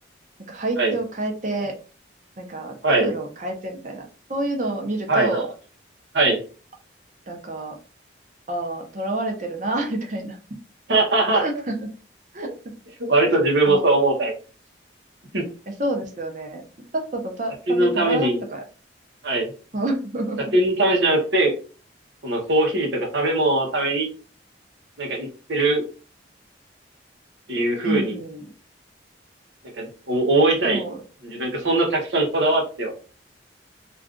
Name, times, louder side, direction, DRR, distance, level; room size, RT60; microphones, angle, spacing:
voice 1, 0.5-1.8 2.4-2.8 3.0-5.5 7.3-7.8 8.5-10.4 11.3-11.9 12.3-12.5 13.7-13.8 15.7-16.6 16.9-18.6 19.7-20.4 27.8-28.5 30.6-31.0, right 2 dB, 45° right, 2 dB, 0.7 m, -28 dB
voice 2, 5.1-5.5 6.1-6.4 10.9-11.4 13.1-14.3 15.3-15.4 17.7-18.4 19.2-19.5 20.5-21.5 22.2-24.1 25.0-25.8 27.5-28.2 29.8-30.8 31.2-32.9, right 2 dB, 75° right, 0 dB, 0.8 m, -21 dB
2.4 x 2.4 x 3.6 m, 0.36 s
head